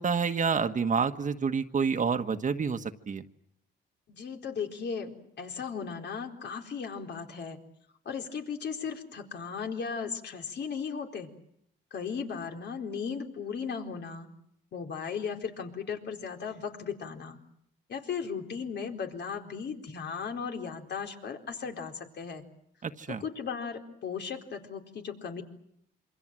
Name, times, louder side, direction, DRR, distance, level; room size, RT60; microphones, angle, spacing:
voice 1, 0.0-3.2 22.8-23.2, right 5 dB, 40° right, 7 dB, 1.5 m, -28 dB
voice 2, 4.1-7.6 8.0-11.3 11.9-14.3 14.7-17.4 17.9-22.4 23.1-25.4, left 6 dB, 60° left, 4 dB, 4.2 m, -36 dB
27.5 x 25.5 x 7.7 m, 0.72 s
cardioid pair, 90°, 20 cm